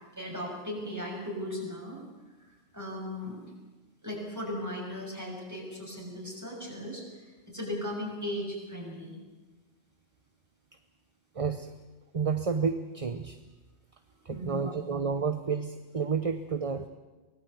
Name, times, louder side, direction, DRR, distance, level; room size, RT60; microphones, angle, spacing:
voice 1, 0.2-2.0 2.7-3.5 4.0-9.1 14.3-14.8, left 1 dB, 15° right, -1 dB, 6.6 m, -37 dB
voice 2, 11.3-11.7 12.1-13.4 14.2-16.9, right 5 dB, 30° right, 9 dB, 0.9 m, -30 dB
24.0 x 18.5 x 8.3 m, 1.2 s
omnidirectional pair, 1.2 m